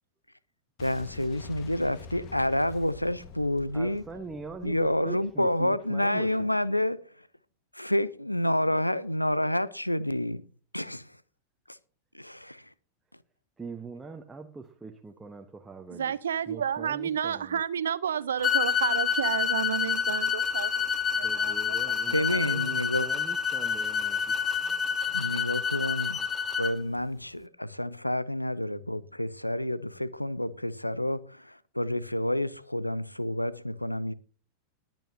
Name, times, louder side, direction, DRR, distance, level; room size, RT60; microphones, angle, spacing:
voice 1, 0.8-4.0 4.6-7.0 7.7-10.4 10.7-11.1 11.7-11.8 12.1-12.7 22.1-23.3 25.1-26.2 26.6-34.1, left 1 dB, 85° left, 0.6 m, -29 dB
Boom, 0.8-5.7, left 5 dB, 40° left, 1.7 m, -47 dB
voice 2, 3.7-6.5 13.6-16.1 16.5-17.6 21.2-24.3, right 4 dB, 10° right, 1.2 m, -42 dB
voice 3, 15.9-21.8, right 8 dB, 65° right, 0.8 m, -31 dB
sound 1, 18.4-26.7, left 6 dB, 20° left, 1.2 m, -28 dB
20.5 x 9.1 x 2.8 m
figure-of-eight pair, 90°, 0 cm